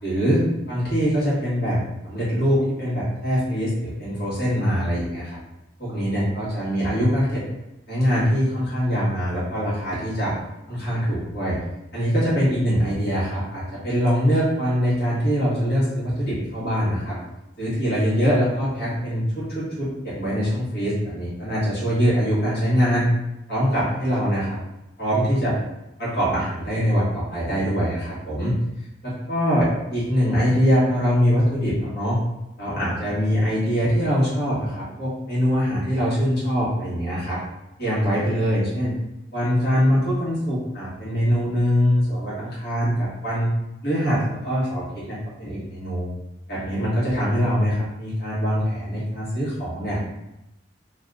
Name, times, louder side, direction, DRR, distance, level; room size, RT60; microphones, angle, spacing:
voice 1, 0.0-0.4 0.7-5.4 5.8-7.4 7.9-10.3 10.7-11.6 11.9-17.2 17.6-23.1 23.5-24.6 25.0-25.6 26.0-28.6 29.0-32.2 32.6-37.4 37.8-38.9 39.3-43.5 43.8-46.1 46.5-50.0, equal, 60° left, -9 dB, 1.5 m, -23 dB
2.7 x 2.6 x 3.5 m, 0.93 s
head